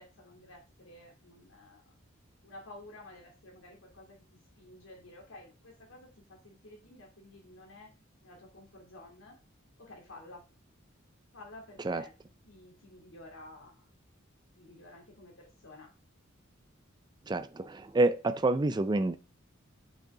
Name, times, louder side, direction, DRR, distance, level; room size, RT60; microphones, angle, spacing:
voice 1, 0.0-1.8 2.4-7.9 8.2-9.4 9.8-10.4 11.3-12.1 12.4-13.9 14.5-15.9, left 2 dB, 80° left, 3.0 m, -52 dB
voice 2, 17.3-19.2, right 2 dB, 20° right, 0.4 m, -28 dB
8.2 x 6.2 x 3.8 m
head